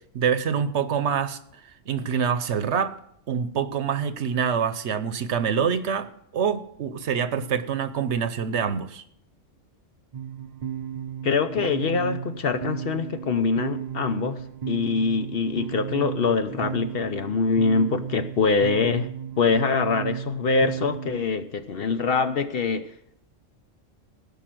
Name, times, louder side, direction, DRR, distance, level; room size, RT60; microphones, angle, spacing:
voice 1, 0.1-1.4 1.9-2.9 3.3-6.1 6.3-9.0, right 7 dB, 65° right, 12 dB, 1.0 m, -25 dB
sound 1, 10.1-21.2, right 9 dB, 50° right, 0.5 m, -34 dB
voice 2, 11.2-14.4 14.7-19.1 19.4-22.9, left 4 dB, 55° left, 10 dB, 0.8 m, -24 dB
16.5 x 5.5 x 7.6 m, 0.70 s
omnidirectional pair, 1.3 m